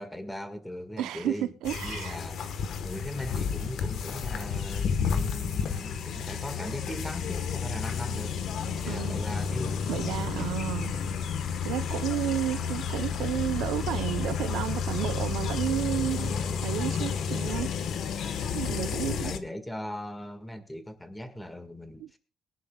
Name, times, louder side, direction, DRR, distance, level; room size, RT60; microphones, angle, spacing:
voice 1, 0.0-1.5 1.8-2.4 2.8-8.4 8.6-9.8 18.7-22.2, left 1 dB, 5° left, 1.8 m, -39 dB
voice 2, 1.0-2.2 8.9-9.2 9.9-11.0 11.6-17.7 18.5-19.3 22.0-22.2, right 13 dB, 85° right, 0.7 m, -32 dB
sound 1, 1.6-19.4, left 6 dB, 60° left, 1.3 m, -31 dB
22.5 x 11.0 x 2.3 m
cardioid pair, 135°, 0 cm